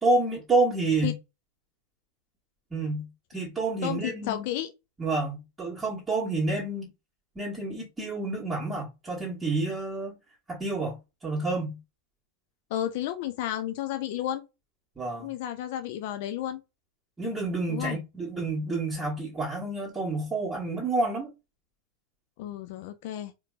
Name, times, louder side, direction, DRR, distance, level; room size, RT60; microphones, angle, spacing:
voice 1, 0.0-1.1 2.7-3.1 3.3-4.4 5.0-6.9 7.3-10.2 10.5-11.0 11.2-11.8 15.0-15.3 17.2-21.3, right 2 dB, 15° right, 1.4 m, -29 dB
voice 2, 3.8-4.7 12.7-14.4 15.2-16.6 17.7-18.0 22.4-23.3, left 12 dB, 50° left, 0.4 m, -32 dB
4.3 x 2.9 x 2.4 m
figure-of-eight pair, 90°, 0 cm